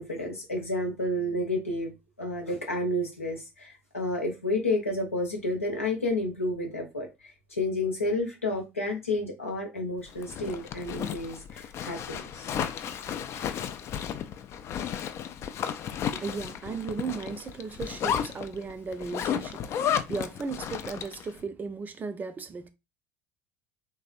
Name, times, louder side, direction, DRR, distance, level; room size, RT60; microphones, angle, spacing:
voice 1, 0.0-1.9 2.2-12.5, left 1 dB, 90° left, 0.9 m, -30 dB
Zipper (clothing), 10.1-21.3, left 8 dB, 40° left, 0.4 m, -33 dB
voice 2, 16.1-22.7, right 5 dB, 25° right, 0.5 m, -36 dB
3.2 x 2.7 x 2.4 m
figure-of-eight pair, 65°, 7 cm